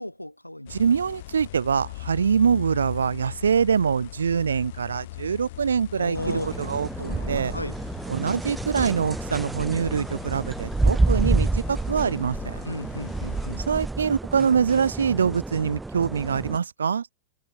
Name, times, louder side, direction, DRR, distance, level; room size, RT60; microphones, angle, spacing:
voice 1, 0.0-0.8 6.0-6.7 7.0-7.7 12.6-13.6, left 1 dB, 90° left, 1.2 m, -34 dB
sound 1, 0.7-13.7, left 18 dB, 50° left, 2.3 m, -41 dB
voice 2, 0.7-6.2 6.6-6.9 7.3-7.5 8.1-12.6 13.7-17.1, right 6 dB, 70° right, 0.7 m, -24 dB
sound 2, 6.2-16.6, right 2 dB, 10° right, 0.5 m, -29 dB
figure-of-eight pair, 90°, 0 cm